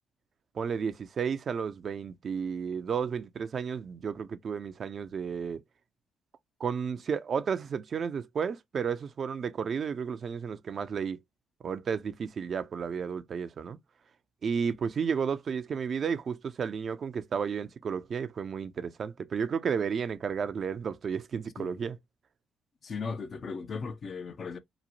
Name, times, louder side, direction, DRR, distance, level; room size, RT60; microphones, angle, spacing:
voice 1, 0.5-5.6 6.6-11.2 11.6-13.8 14.4-22.0, right 6 dB, 55° right, 0.4 m, -32 dB
voice 2, 22.8-24.6, left 5 dB, 50° left, 0.5 m, -37 dB
3.0 x 2.0 x 2.5 m
hypercardioid pair, 50°, 0 cm